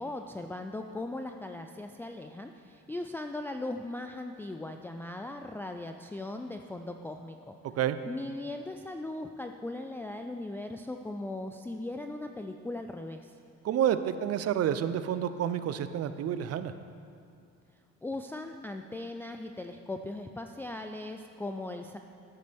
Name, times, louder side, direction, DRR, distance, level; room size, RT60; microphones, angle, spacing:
voice 1, 0.0-7.6 8.1-13.4 18.0-22.0, left 2 dB, 5° left, 4 dB, 0.3 m, -38 dB
voice 2, 13.6-16.7, right 10 dB, 55° right, 12 dB, 0.5 m, -29 dB
11.5 x 8.4 x 3.5 m, 2.5 s
cardioid pair, 90°, 30 cm